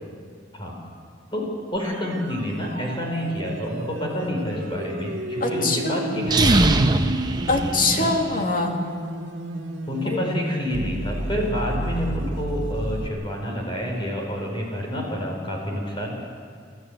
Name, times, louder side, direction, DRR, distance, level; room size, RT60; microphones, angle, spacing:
voice 1, 1.3-6.9 8.0-8.1 9.9-16.1, equal, 25° left, 0 dB, 4.5 m, -28 dB
sound 1, 1.8-13.1, right 1 dB, 75° right, 1.9 m, -32 dB
voice 2, 5.4-6.3 7.5-8.8 10.0-10.2, left 2 dB, 45° left, 2 dB, 2.4 m, -24 dB
sound 2, 6.2-8.4, right 2 dB, 20° right, 0.9 m, -21 dB
25.0 x 14.0 x 8.0 m, 2.1 s
head